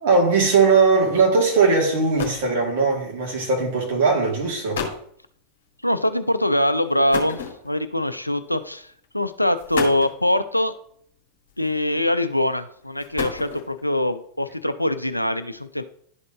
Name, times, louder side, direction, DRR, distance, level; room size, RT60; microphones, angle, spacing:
voice 1, 0.0-4.8, right 4 dB, 55° right, 2.4 m, -19 dB
sound 1, 1.9-2.6 3.5-3.8 4.4-4.5 4.7-5.1 7.1-8.0 8.9-9.0 9.5-10.2 11.5-12.0 12.8-13.8, left 6 dB, 60° left, 1.5 m, -31 dB
voice 2, 5.8-10.7 11.6-15.8, left 1 dB, 85° left, 0.4 m, -23 dB
11.5 x 4.2 x 2.9 m
figure-of-eight pair, 90°, 0 cm